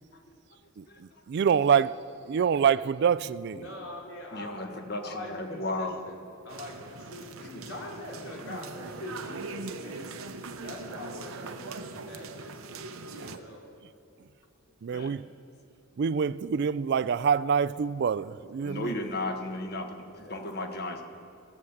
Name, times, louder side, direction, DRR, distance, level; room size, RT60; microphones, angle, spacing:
voice 1, 0.8-3.6 13.2-13.4 14.8-15.2 16.0-18.9, right 7 dB, 55° right, 0.3 m, -26 dB
voice 2, 3.5-10.1 10.6-13.7 14.8-14.9 19.8-20.5, left 1 dB, 80° left, 3.3 m, -43 dB
voice 3, 4.3-5.9 7.5-7.7 14.9-15.1 18.6-21.0, left 2 dB, 50° left, 1.3 m, -35 dB
sound 1, 6.5-13.4, right 3 dB, 85° right, 0.8 m, -41 dB
18.0 x 7.2 x 7.9 m
head